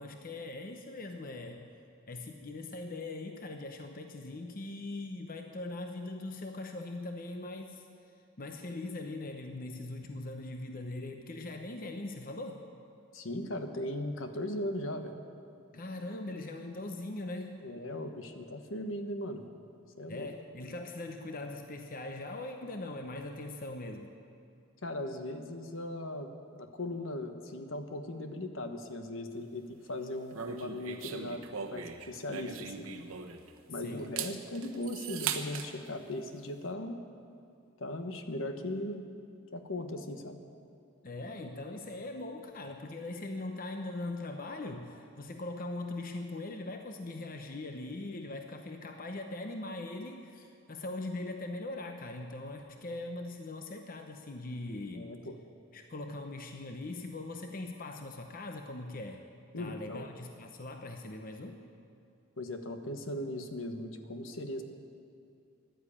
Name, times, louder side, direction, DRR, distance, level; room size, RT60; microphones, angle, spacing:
voice 1, 0.0-1.7 2.1-7.9 8.4-12.7 15.7-17.7 20.1-24.1 33.8-34.2 41.0-55.1 55.7-59.3 59.6-61.6, left 2 dB, 40° left, 5 dB, 0.8 m, -41 dB
voice 2, 13.1-15.1 17.6-19.4 20.0-20.3 24.8-31.4 31.7-32.9 33.7-37.0 37.8-39.0 39.5-40.4 54.9-55.4 59.5-60.1 62.4-64.6, left 1 dB, 70° left, 6 dB, 1.2 m, -38 dB
sound 1, 30.3-33.6 34.0-35.7, right 7 dB, 85° right, 1.1 m, -39 dB
15.0 x 11.0 x 8.6 m, 2.5 s
head